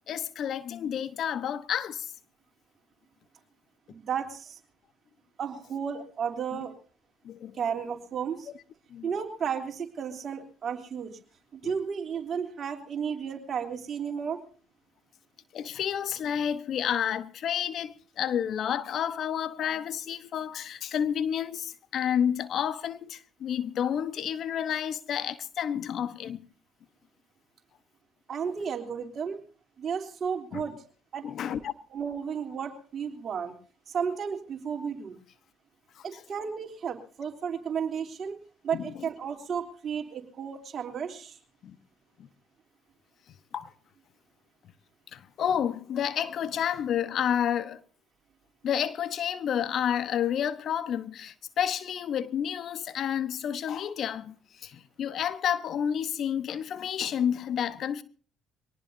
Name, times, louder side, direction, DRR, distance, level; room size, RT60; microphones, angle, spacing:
voice 1, 0.1-2.1 6.5-6.6 7.2-7.6 8.9-9.1 11.6-11.7 15.5-26.4 30.5-30.6 31.2-31.7 36.0-36.2 38.7-38.9 41.6-41.8 43.5-43.7 45.1-47.8 48.6-58.0, left 9 dB, 55° left, 1.1 m, -30 dB
voice 2, 3.9-4.6 5.4-6.7 7.6-8.5 9.0-11.2 11.5-14.4 28.3-29.4 29.8-30.8 31.1-31.3 31.9-33.5 33.9-35.2 36.0-38.4 38.6-41.4, right 7 dB, 50° right, 3.3 m, -33 dB
24.0 x 19.0 x 2.7 m
hypercardioid pair, 55°, 0 cm